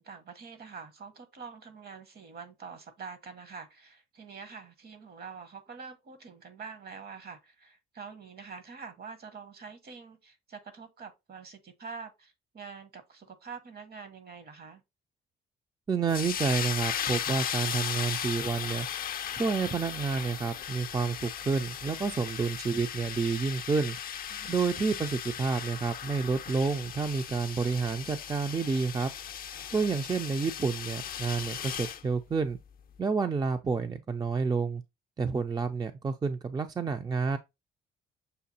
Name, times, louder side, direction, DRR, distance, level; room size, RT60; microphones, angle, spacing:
voice 1, 0.0-14.8 24.3-24.6 29.7-29.8, right 5 dB, 50° right, 1.0 m, -46 dB
voice 2, 15.9-18.9 19.3-24.0 24.5-29.1 29.7-32.6 33.0-34.8 35.2-37.4, right 5 dB, 20° right, 0.4 m, -29 dB
sound 1, 16.1-32.0, left 9 dB, 45° left, 0.4 m, -37 dB
6.6 x 2.3 x 2.7 m
cardioid pair, 90°, 20 cm